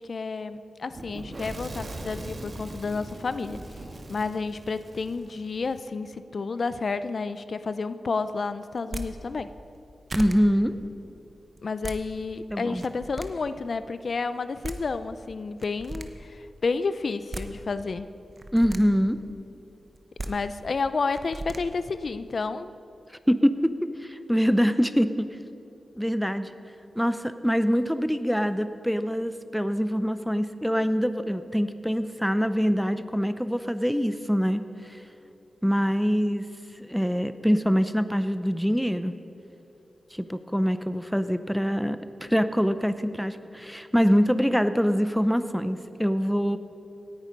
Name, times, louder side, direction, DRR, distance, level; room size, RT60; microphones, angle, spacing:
voice 1, 0.0-3.8 4.1-9.5 11.6-18.1 20.3-22.7, left 4 dB, 60° left, 13 dB, 0.4 m, -30 dB
Fire / Explosion, 0.9-5.8, right 1 dB, 55° right, 1.6 m, -40 dB
sound 1, 8.8-9.1 9.7-9.8 10.1-10.4 11.6-12.0 12.7-13.3 14.3-14.4 14.6-14.8 15.6-16.1 17.1-17.5 18.3-18.8 19.9-20.3 21.1-21.6, right 2 dB, 35° right, 1.0 m, -35 dB
voice 2, 10.2-10.8 12.5-12.8 18.5-19.2 23.3-23.7 24.0-25.3 26.0-26.5 27.0-34.6 35.6-36.5 36.8-39.1 40.1-46.6, equal, ahead, 11 dB, 0.6 m, -24 dB
17.5 x 9.6 x 5.3 m, 2.8 s
cardioid pair, 75°, 0 cm